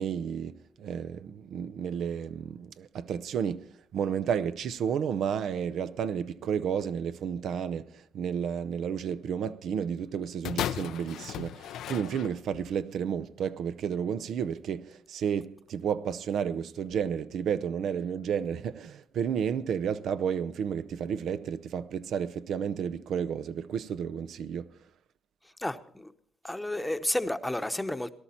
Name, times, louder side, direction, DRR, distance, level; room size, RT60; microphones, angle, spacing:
voice 1, 0.0-24.8, right 7 dB, 70° right, 0.5 m, -32 dB
sound 1, 10.4-12.7 13.5-13.6, left 11 dB, 80° left, 0.5 m, -35 dB
voice 2, 25.4-26.1 26.4-28.1, left 1 dB, 10° left, 0.9 m, -31 dB
18.0 x 11.5 x 4.3 m
cardioid pair, 90°, 0 cm